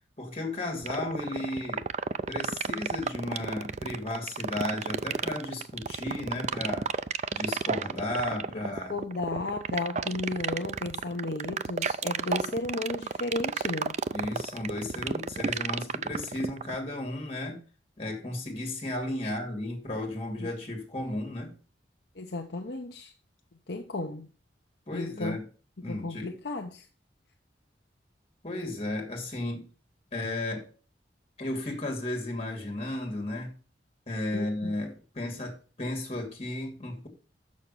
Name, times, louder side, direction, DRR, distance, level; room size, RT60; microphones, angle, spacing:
voice 1, 0.2-1.8 2.3-6.9 7.3-8.9 14.1-17.6 18.0-21.6 24.9-25.5 25.8-26.3 28.4-29.7 30.1-30.7 31.4-33.5 34.1-37.1, left 1 dB, 35° left, 2.6 m, -34 dB
sound 1, 0.8-16.8, right 5 dB, 40° right, 0.4 m, -31 dB
voice 2, 8.3-14.0 19.2-19.3 20.4-20.5 22.2-23.1 23.7-24.3 24.9-25.4 25.9-26.9 34.3-34.8, left 2 dB, 60° left, 0.8 m, -34 dB
6.5 x 6.5 x 6.9 m
head